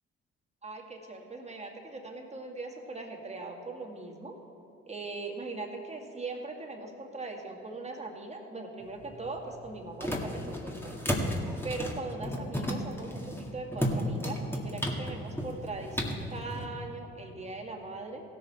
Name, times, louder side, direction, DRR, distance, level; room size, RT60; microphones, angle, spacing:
voice 1, 0.6-4.4 4.9-10.9 11.4-18.2, right 3 dB, 20° right, 1 dB, 2.1 m, -40 dB
sound 1, 8.8-16.7, equal, 10° left, 1.9 m, -34 dB
17.0 x 6.6 x 4.4 m, 2.9 s
hypercardioid pair, 50°, 30 cm